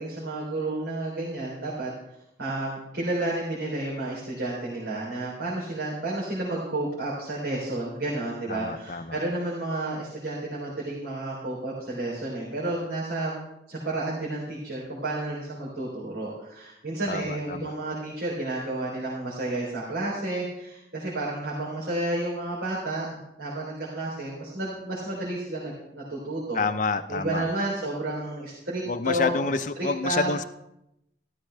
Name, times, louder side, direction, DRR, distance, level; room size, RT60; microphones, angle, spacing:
voice 1, 0.0-1.9 2.4-13.3 13.7-26.6 27.1-30.3, right 2 dB, 80° right, -6 dB, 3.4 m, -31 dB
voice 2, 8.5-9.2 17.1-17.7 26.5-27.5 28.9-30.4, left 4 dB, 45° left, 11 dB, 0.5 m, -28 dB
14.0 x 13.0 x 3.3 m, 0.84 s
head